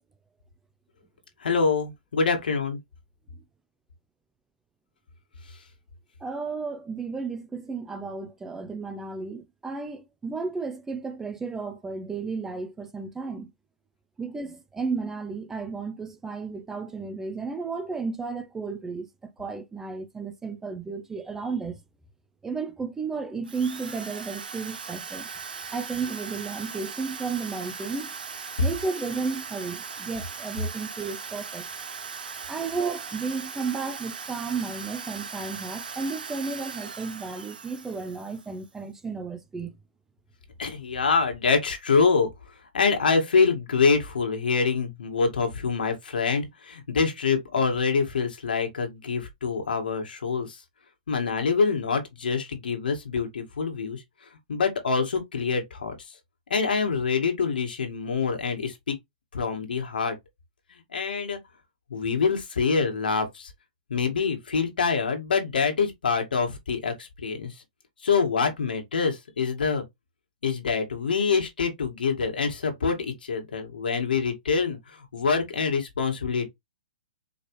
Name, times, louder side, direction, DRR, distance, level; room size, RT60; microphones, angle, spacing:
voice 1, 1.4-2.8 40.6-42.3 42.7-50.6 51.1-54.0 54.5-55.9 56.5-59.0 59.3-60.2 60.7-61.4 61.9-63.5 63.9-67.5 68.0-69.9 70.4-76.5, left 5 dB, 90° left, 1.8 m, -25 dB
voice 2, 6.2-13.5 14.2-21.8 22.4-25.3 25.7-28.1 28.6-31.7 32.5-39.8, right 4 dB, 10° right, 0.5 m, -33 dB
Drill, 23.4-38.6, right 6 dB, 90° right, 1.0 m, -39 dB
4.7 x 3.3 x 3.1 m
hypercardioid pair, 150°, 5 cm